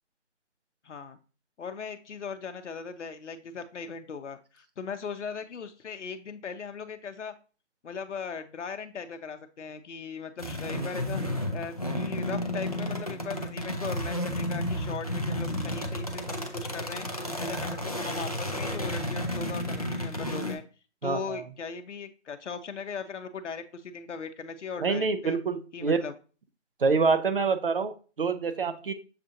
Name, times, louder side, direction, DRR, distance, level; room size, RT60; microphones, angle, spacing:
voice 1, 0.8-1.2 1.6-7.3 7.8-11.2 11.5-17.1 17.4-20.6 21.0-25.4 25.7-26.1, left 5 dB, 75° left, 8 dB, 0.7 m, -38 dB
sound 1, 10.4-20.6, left 1 dB, 35° left, 0.4 m, -32 dB
voice 2, 21.0-21.4 24.8-26.0 26.8-28.9, right 4 dB, 50° right, 8 dB, 0.6 m, -26 dB
6.6 x 2.5 x 2.7 m, 0.37 s
figure-of-eight pair, 160°, 36 cm